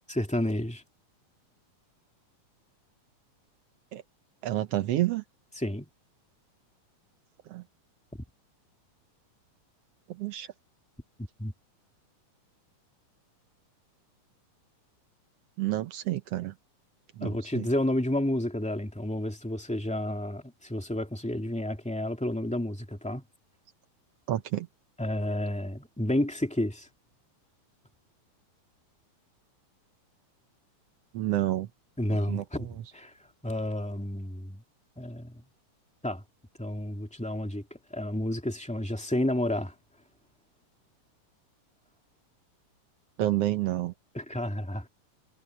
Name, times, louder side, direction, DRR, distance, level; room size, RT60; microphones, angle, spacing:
voice 1, 0.1-0.8 5.6-5.9 11.4-11.5 17.2-23.2 25.0-26.9 32.0-32.7 32.9-33.1 33.4-34.6 35.0-35.4 36.0-36.2 36.6-37.6 37.9-39.7 44.1-44.9, left 1 dB, ahead, 2.1 m, -30 dB
voice 2, 4.4-5.2 7.5-7.6 10.1-10.5 15.6-16.5 17.2-17.7 24.3-24.7 31.1-31.7 32.3-32.7 43.2-43.9, right 14 dB, 75° right, 1.4 m, -29 dB
omnidirectional pair, 3.7 m